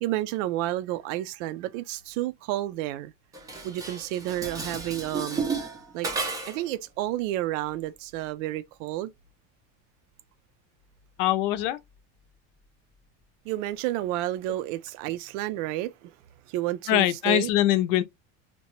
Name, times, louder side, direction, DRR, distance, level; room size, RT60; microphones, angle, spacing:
voice 1, 0.0-3.1 3.6-5.5 5.9-6.1 6.5-9.1 13.4-16.2 16.5-17.5, right 14 dB, 75° right, 0.5 m, -30 dB
Dishes pots and pans, 3.3-6.7, right 4 dB, 10° right, 0.4 m, -33 dB
voice 2, 11.2-11.8 16.9-18.0, left 14 dB, 70° left, 0.6 m, -23 dB
2.9 x 2.1 x 2.9 m
cardioid pair, 165°, 37 cm